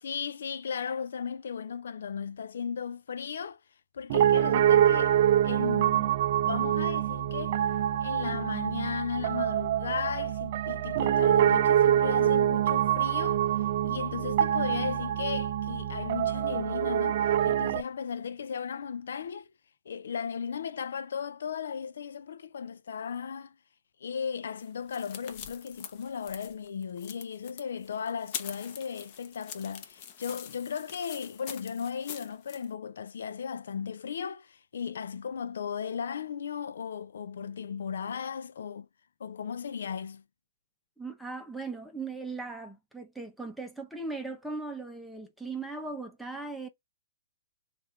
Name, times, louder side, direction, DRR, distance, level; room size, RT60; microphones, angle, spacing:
voice 1, 0.0-3.6 3.9-5.1 5.4-6.1 6.4-7.6 8.0-19.5 19.9-23.6 24.0-38.9 39.2-40.2, left 7 dB, 75° left, 0.4 m, -36 dB
Piano, 4.1-17.8, right 11 dB, 50° right, 0.3 m, -25 dB
sound 1, 24.6-32.6, left 9 dB, 45° left, 0.8 m, -44 dB
voice 2, 41.0-46.7, right 3 dB, ahead, 0.7 m, -38 dB
3.4 x 2.5 x 4.3 m
hypercardioid pair, 135°, 0 cm